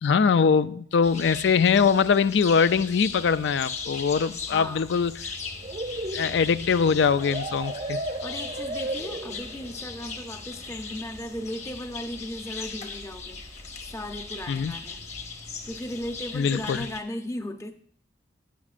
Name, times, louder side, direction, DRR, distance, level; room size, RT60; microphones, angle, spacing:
voice 1, 0.0-5.3 6.1-8.3 14.5-14.7 16.3-16.9, left 6 dB, 75° left, 0.4 m, -22 dB
sound 1, 1.0-17.0, left 4 dB, 40° left, 1.2 m, -39 dB
voice 2, 4.5-4.8 8.2-15.0 15.6-17.7, left 1 dB, 15° left, 0.6 m, -36 dB
sound 2, 5.6-9.7, right 1 dB, 35° right, 0.6 m, -34 dB
16.0 x 7.2 x 2.5 m
head